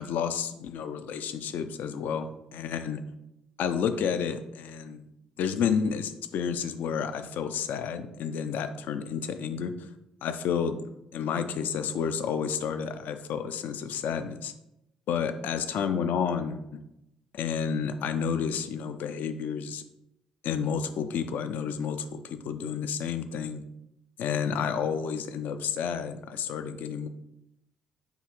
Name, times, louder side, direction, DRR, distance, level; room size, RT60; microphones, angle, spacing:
voice 1, 0.0-3.0 3.6-5.1 5.4-9.9 10.2-10.8 11.1-14.5 15.1-16.8 17.3-19.8 20.4-23.6 24.2-27.1, left 7 dB, 60° left, 9 dB, 0.3 m, -30 dB
5.4 x 2.5 x 3.0 m, 0.85 s
figure-of-eight pair, 40°, 3 cm